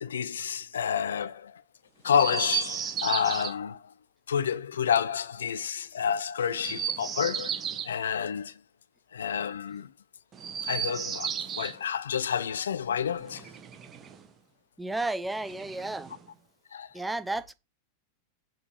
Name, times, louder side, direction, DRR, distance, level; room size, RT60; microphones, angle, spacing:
voice 1, 0.0-1.6 2.0-3.9 4.3-8.6 9.1-9.9 10.6-13.5 16.7-16.9, left 8 dB, 65° left, 0.4 m, -29 dB
Chirp tweet, 2.1-3.5 6.5-7.9 10.3-11.8 13.2-14.3 15.4-16.3, right 8 dB, 25° right, 1.2 m, -34 dB
voice 2, 14.8-16.1 16.9-17.5, right 2 dB, 5° right, 0.6 m, -32 dB
7.2 x 4.8 x 3.3 m
figure-of-eight pair, 90°, 0 cm